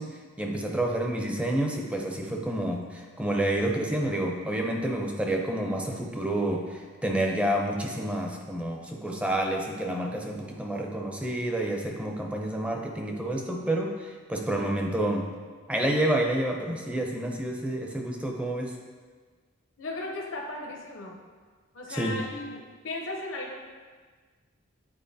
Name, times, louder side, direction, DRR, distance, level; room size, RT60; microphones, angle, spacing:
voice 1, 0.0-15.3 15.7-18.8 21.9-22.2, right 1 dB, 5° right, 1 dB, 0.5 m, -29 dB
voice 2, 19.8-21.2 21.7-23.6, left 2 dB, 70° left, -1 dB, 0.7 m, -36 dB
8.8 x 4.5 x 2.7 m, 1.5 s
head